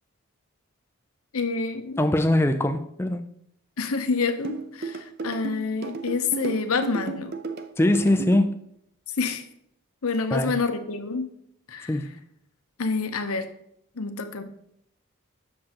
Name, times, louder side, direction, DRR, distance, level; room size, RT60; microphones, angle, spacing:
voice 1, 1.3-2.0 3.8-7.4 9.2-9.4 10.0-11.3 11.7-12.1 12.8-13.5 14.0-14.4, left 4 dB, 80° left, 0.8 m, -27 dB
voice 2, 2.0-3.3 7.8-8.6 10.3-10.5 11.9-12.1, left 1 dB, 10° left, 0.3 m, -22 dB
sound 1, 4.4-8.4, right 4 dB, 45° right, 0.5 m, -33 dB
7.6 x 6.5 x 2.9 m
head